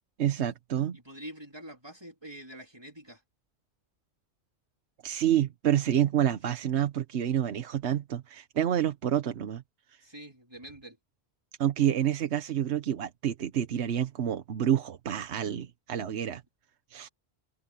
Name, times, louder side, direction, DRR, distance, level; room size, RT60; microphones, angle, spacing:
voice 1, 0.2-1.0 5.0-9.6 11.6-16.4 16.9-17.1, right 10 dB, 85° right, 1.2 m, -28 dB
voice 2, 0.9-3.2 10.0-11.0, right 1 dB, 25° right, 3.7 m, -46 dB
open air
omnidirectional pair, 1.1 m